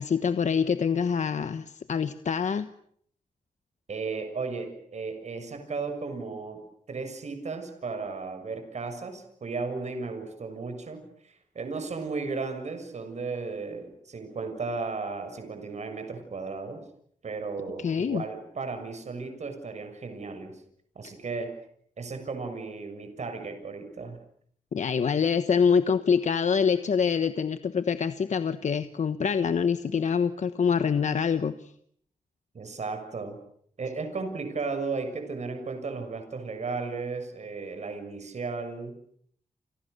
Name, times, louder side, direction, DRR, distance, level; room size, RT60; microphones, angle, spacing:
voice 1, 0.0-2.7 17.8-18.2 21.0-21.1 24.7-31.7, left 6 dB, 60° left, 11 dB, 1.2 m, -25 dB
voice 2, 3.9-6.6 6.9-16.8 17.2-20.6 20.9-21.5 22.0-24.2 32.5-33.4 33.8-38.9, right 4 dB, 55° right, 7 dB, 6.8 m, -35 dB
29.0 x 28.5 x 6.8 m, 0.66 s
wide cardioid pair, 125°, 14 cm